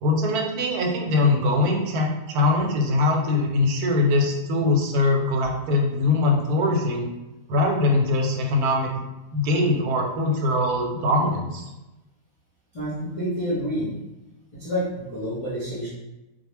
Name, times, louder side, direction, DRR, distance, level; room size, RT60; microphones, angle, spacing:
voice 1, 0.0-7.1 7.5-8.9 9.3-11.7, left 2 dB, 85° right, 1 dB, 1.1 m, -22 dB
voice 2, 12.7-13.9 14.5-15.9, equal, 40° left, -11 dB, 0.4 m, -28 dB
2.4 x 2.2 x 3.1 m, 1.0 s
omnidirectional pair, 1.6 m